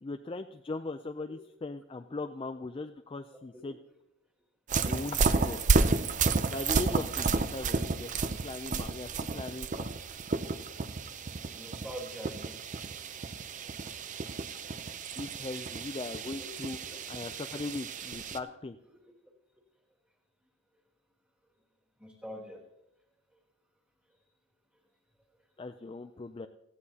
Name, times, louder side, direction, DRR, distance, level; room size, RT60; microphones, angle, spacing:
voice 1, 0.0-3.8 4.8-5.6 6.5-8.1 8.4-9.9 15.2-16.8 17.1-18.8 25.6-26.5, left 3 dB, 25° left, 7 dB, 0.3 m, -39 dB
sound 1, 4.7-18.4, right 4 dB, 35° right, 0.5 m, -31 dB
voice 2, 11.5-12.6 16.3-16.5 16.8-17.0 18.9-19.1 22.0-22.6, equal, 5° right, -2 dB, 2.1 m, -45 dB
18.0 x 14.0 x 2.8 m, 0.87 s
head